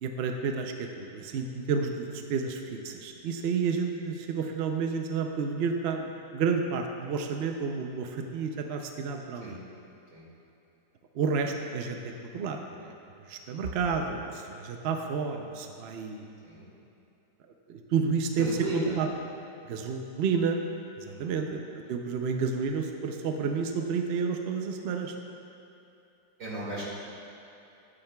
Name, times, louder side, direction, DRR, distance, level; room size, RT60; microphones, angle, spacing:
voice 1, 0.0-9.6 11.1-12.9 13.3-16.3 17.7-18.5 18.7-19.1 19.7-20.6 21.0-21.6 21.9-25.1, right 5 dB, 75° right, 4 dB, 0.5 m, -30 dB
voice 2, 18.4-19.0 21.0-21.3 26.4-26.8, right 1 dB, 50° right, -5 dB, 2.3 m, -35 dB
13.5 x 8.7 x 2.3 m, 2.8 s
omnidirectional pair, 1.8 m